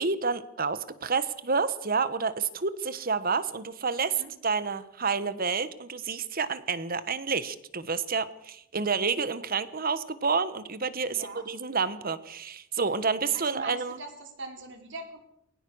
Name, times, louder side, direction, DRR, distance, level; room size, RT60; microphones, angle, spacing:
voice 1, 0.0-14.0, right 5 dB, 45° right, 14 dB, 1.3 m, -29 dB
voice 2, 11.1-11.4 13.3-15.2, right 2 dB, 60° right, 4 dB, 4.3 m, -42 dB
21.5 x 18.5 x 6.4 m, 0.79 s
head